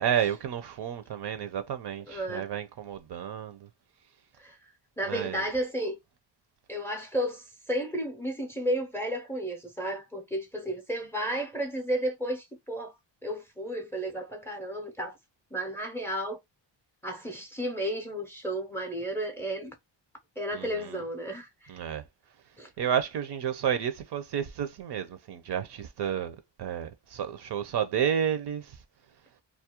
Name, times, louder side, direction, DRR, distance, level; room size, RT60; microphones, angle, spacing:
voice 1, 0.0-3.6 5.1-5.5 20.5-21.0 21.7-22.0 22.8-28.7, right 9 dB, 55° right, 0.5 m, -31 dB
voice 2, 2.1-2.5 4.4-4.6 5.0-6.0 6.7-12.9 13.2-15.1 15.5-16.4 17.0-19.7 20.4-21.7 22.6-22.7, right 1 dB, 5° left, 0.5 m, -33 dB
2.3 x 2.0 x 2.8 m
cardioid pair, 85°, 48 cm